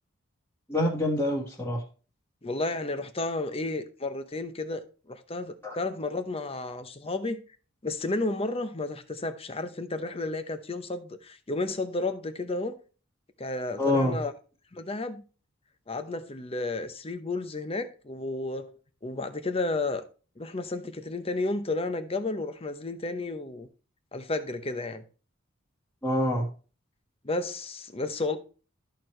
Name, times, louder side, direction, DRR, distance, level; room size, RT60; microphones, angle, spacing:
voice 1, 0.7-1.8 5.6-5.7 13.8-14.2 26.0-26.5, left 1 dB, 10° left, 1.7 m, -26 dB
voice 2, 2.4-7.4 7.8-12.8 13.4-14.3 14.7-15.2 15.9-18.8 19.0-20.0 20.4-23.7 24.1-25.0 27.2-28.4, left 2 dB, 30° left, 0.8 m, -32 dB
13.5 x 4.6 x 3.2 m
head